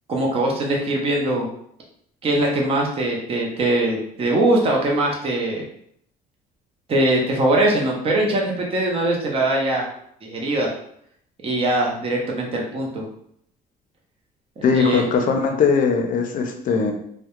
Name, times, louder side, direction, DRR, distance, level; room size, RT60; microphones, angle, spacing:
voice 1, 0.1-1.5 2.2-5.6 6.9-9.9 10.2-10.7 11.4-13.1 14.6-15.0, right 1 dB, 35° right, -1 dB, 0.6 m, -21 dB
voice 2, 14.6-16.9, left 5 dB, 50° left, 4 dB, 0.5 m, -20 dB
2.3 x 2.1 x 2.9 m, 0.68 s
cardioid pair, 110°, 17 cm